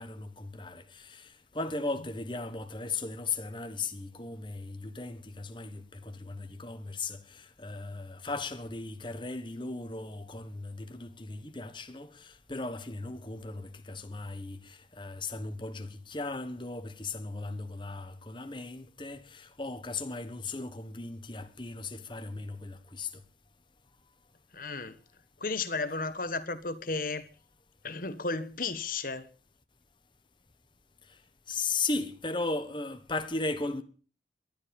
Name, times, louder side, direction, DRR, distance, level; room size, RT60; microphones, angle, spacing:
voice 1, 0.0-23.2 31.5-33.8, left 3 dB, 25° left, 1.4 m, -37 dB
voice 2, 24.5-25.0 25.4-27.2 27.8-29.3, left 3 dB, 45° left, 1.4 m, -33 dB
22.5 x 11.5 x 5.3 m
head